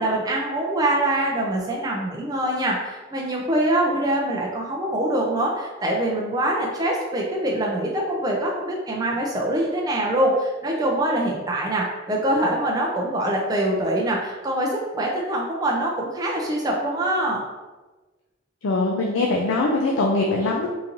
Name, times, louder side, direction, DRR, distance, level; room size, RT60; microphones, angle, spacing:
voice 1, 0.0-17.4, right 1 dB, 20° right, -3 dB, 0.4 m, -24 dB
voice 2, 18.6-20.7, left 2 dB, 75° left, -1 dB, 0.4 m, -22 dB
3.7 x 2.5 x 2.9 m, 1.2 s
head